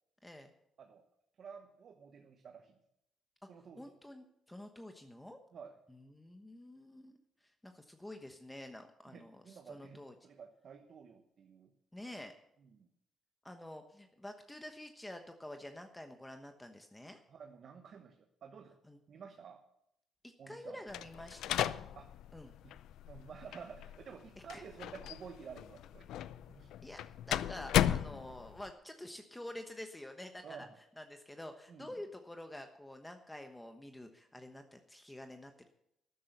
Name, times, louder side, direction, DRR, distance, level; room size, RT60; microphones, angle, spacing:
voice 1, 0.2-0.5 3.4-3.5 3.8-5.4 5.9-7.2 7.6-10.1 11.9-12.3 13.4-17.2 18.9-19.0 20.2-21.6 22.3-22.5 24.5-24.6 26.8-27.0 27.2-30.7 31.0-35.7, left 1 dB, 10° left, 6 dB, 1.1 m, -48 dB
voice 2, 1.4-2.8 3.5-3.8 5.5-5.7 9.1-11.7 12.6-12.9 17.3-18.8 19.1-19.6 20.4-20.8 21.9-22.1 22.6-22.7 23.1-26.1 26.5-26.7 30.4-30.7 31.7-31.9, right 6 dB, 55° right, 5 dB, 1.1 m, -51 dB
sound 1, 20.9-28.7, left 11 dB, 85° left, 0.5 m, -36 dB
12.5 x 10.0 x 6.8 m, 0.79 s
cardioid pair, 90°, 0 cm